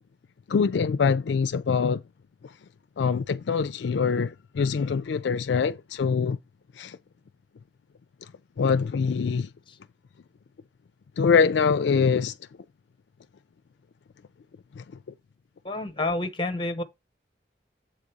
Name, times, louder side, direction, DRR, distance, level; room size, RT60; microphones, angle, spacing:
voice 1, 0.5-2.0 3.0-6.4 6.8-7.0 8.6-9.5 11.2-12.3 14.8-14.9, left 5 dB, 75° left, 0.4 m, -24 dB
voice 2, 15.6-16.8, left 2 dB, 30° left, 0.9 m, -29 dB
7.8 x 4.0 x 4.8 m
head